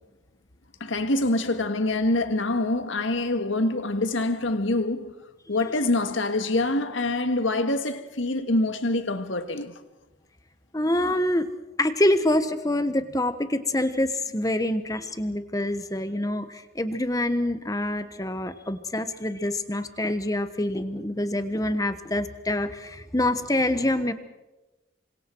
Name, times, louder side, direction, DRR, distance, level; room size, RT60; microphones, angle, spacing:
voice 1, 0.8-5.1 5.5-9.7, left 2 dB, 90° left, 1.7 m, -25 dB
voice 2, 10.7-11.5 11.8-24.1, left 1 dB, 20° left, 1.2 m, -26 dB
28.0 x 25.0 x 4.6 m
head